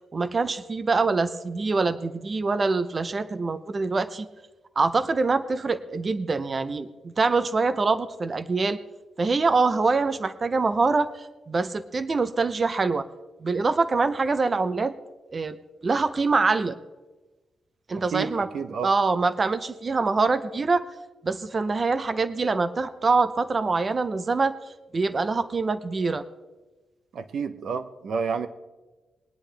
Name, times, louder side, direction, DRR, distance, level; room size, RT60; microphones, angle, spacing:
voice 1, 0.1-4.3 4.8-8.8 9.2-13.1 13.4-14.9 15.3-15.6 15.8-16.8 17.9-18.5 18.8-20.9 21.2-24.5 24.9-26.2, right 4 dB, 30° right, 13 dB, 0.6 m, -24 dB
voice 2, 18.1-18.9 27.1-28.5, right 6 dB, 60° right, 11 dB, 0.8 m, -30 dB
20.5 x 10.0 x 3.4 m, 1.2 s
wide cardioid pair, 160°, 0 cm